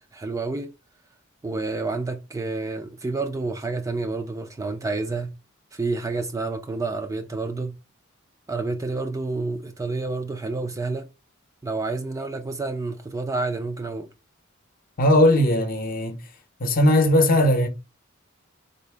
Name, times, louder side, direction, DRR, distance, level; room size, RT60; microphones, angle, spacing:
voice 1, 0.1-0.7 1.4-5.3 5.7-7.8 8.5-11.1 11.6-14.1, right 3 dB, 15° right, 0.3 m, -29 dB
voice 2, 15.0-16.2 16.6-17.7, left 1 dB, 45° left, 0.7 m, -18 dB
3.9 x 2.0 x 3.2 m
head